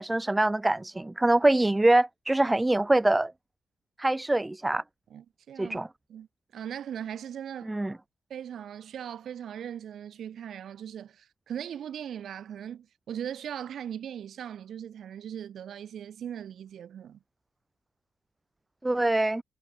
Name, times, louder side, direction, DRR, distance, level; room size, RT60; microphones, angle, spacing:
voice 1, 0.0-3.3 4.0-4.8 5.6-5.9 7.7-7.9 18.8-19.4, right 2 dB, 15° right, 0.4 m, -24 dB
voice 2, 5.1-5.8 6.1-6.3 6.5-7.7 8.3-17.2, right 9 dB, 65° right, 1.1 m, -39 dB
cardioid pair, 90°, 0 cm